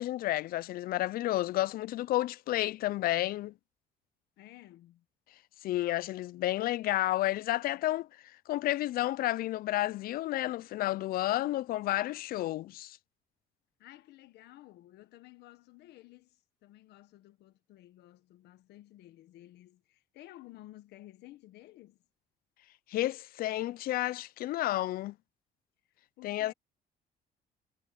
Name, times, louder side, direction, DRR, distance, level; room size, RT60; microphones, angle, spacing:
voice 1, 0.0-3.5 5.6-8.1 8.5-13.0 22.9-25.1 26.2-26.5, left 15 dB, 60° left, 0.4 m, -31 dB
voice 2, 4.4-5.0 13.8-22.0 25.9-26.5, left 15 dB, 80° left, 1.4 m, -54 dB
cardioid pair, 110°, 17 cm